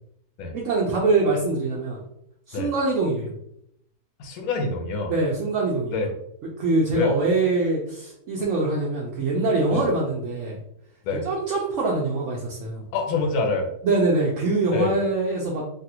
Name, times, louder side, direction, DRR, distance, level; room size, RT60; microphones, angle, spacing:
voice 1, 0.5-2.0 2.5-3.3 5.1-6.0 6.6-10.6 11.2-12.8 13.8-15.6, right 3 dB, 65° right, -3 dB, 0.8 m, -23 dB
voice 2, 4.2-5.1 5.9-6.1 6.9-7.2 9.7-9.8 11.1-11.2 12.9-13.7 14.7-14.9, left 4 dB, 75° left, 2 dB, 1.1 m, -25 dB
3.3 x 2.4 x 2.8 m, 0.72 s
omnidirectional pair, 1.7 m